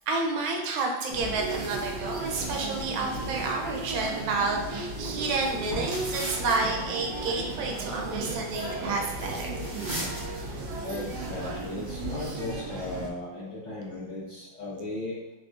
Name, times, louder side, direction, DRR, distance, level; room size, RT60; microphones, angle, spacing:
voice 1, 0.1-9.6, right 3 dB, 90° right, 1 dB, 1.4 m, -30 dB
sound 1, 1.1-13.1, right 3 dB, 70° right, 1.0 m, -36 dB
sound 2, 1.2-12.1, equal, 55° right, 1.3 m, -41 dB
voice 2, 10.8-15.2, left 2 dB, 65° left, -10 dB, 0.4 m, -36 dB
3.4 x 2.5 x 2.4 m, 1.0 s
omnidirectional pair, 2.2 m